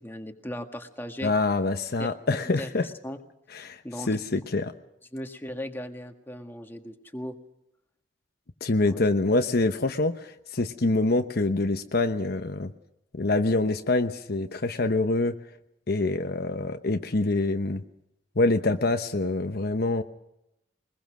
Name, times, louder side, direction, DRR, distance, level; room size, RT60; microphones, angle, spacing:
voice 1, 0.0-1.3 2.0-2.1 2.6-3.2 3.8-4.2 5.1-7.4 8.8-9.0, left 1 dB, 10° left, 4 dB, 1.7 m, -37 dB
voice 2, 1.2-2.9 3.5-3.8 4.1-4.7 8.6-12.7 13.1-15.3 15.9-17.8 18.4-20.0, left 2 dB, 60° left, 7 dB, 1.0 m, -25 dB
22.0 x 21.5 x 6.2 m, 0.84 s
head